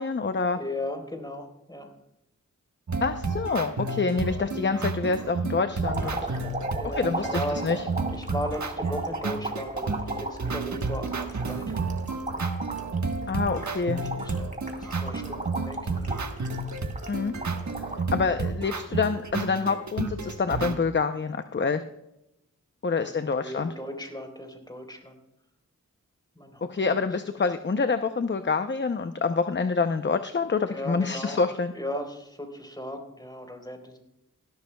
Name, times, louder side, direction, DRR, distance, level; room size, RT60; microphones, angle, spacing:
voice 1, 0.0-0.6 3.0-6.2 6.8-7.8 13.3-14.0 17.1-17.3 18.1-21.8 22.8-23.7 26.7-31.7, left 4 dB, 35° left, 9 dB, 0.7 m, -27 dB
voice 2, 0.6-1.9 4.4-4.5 6.8-7.7 8.1-12.1 13.8-16.3 23.0-25.2 26.4-27.0 30.6-31.4 31.7-34.0, left 1 dB, 10° left, 3 dB, 3.9 m, -37 dB
sound 1, 2.9-20.7, right 3 dB, 55° right, 1.4 m, -31 dB
sound 2, 5.8-18.1 18.6-19.3 20.3-20.5, right 2 dB, 25° right, 2.9 m, -36 dB
18.0 x 12.5 x 2.3 m, 0.85 s
cardioid pair, 40°, 34 cm